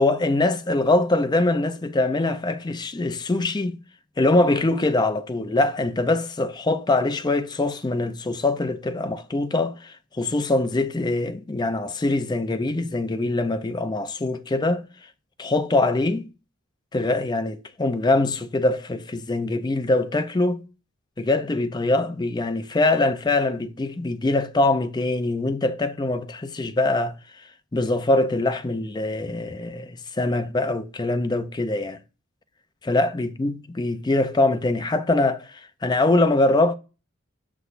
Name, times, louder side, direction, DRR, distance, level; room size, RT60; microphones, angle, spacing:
voice 1, 0.0-3.8 4.2-14.8 15.4-16.3 16.9-20.6 21.2-27.1 27.7-32.0 32.8-35.5 35.8-36.8, left 2 dB, 20° left, 0.4 m, -23 dB
6.7 x 6.1 x 2.5 m
head